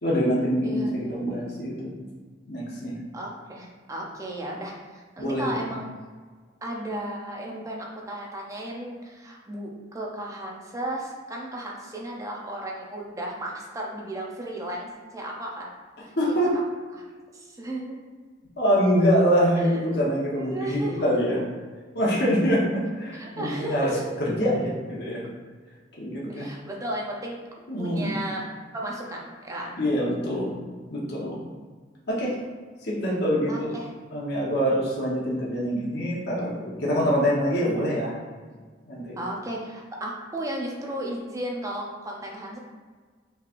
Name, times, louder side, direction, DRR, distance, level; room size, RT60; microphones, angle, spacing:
voice 1, 0.0-2.0 2.5-3.0 5.2-5.6 16.2-16.6 18.6-21.4 21.9-25.2 26.0-26.5 27.7-28.3 29.8-30.5 30.9-31.4 32.1-32.3 32.8-33.7 34.1-38.2 38.9-39.2, equal, 60° left, -5 dB, 1.1 m, -25 dB
voice 2, 0.6-1.2 3.1-5.8 6.6-14.9 15.1-15.7 16.0-16.1 16.9-17.0 17.3-18.0 20.3-21.2 23.1-24.2 26.3-27.4 27.8-28.4 28.7-29.8 33.5-33.9 39.2-42.6, right 1 dB, 20° right, -2 dB, 0.7 m, -34 dB
5.5 x 3.3 x 2.6 m, 1.5 s
head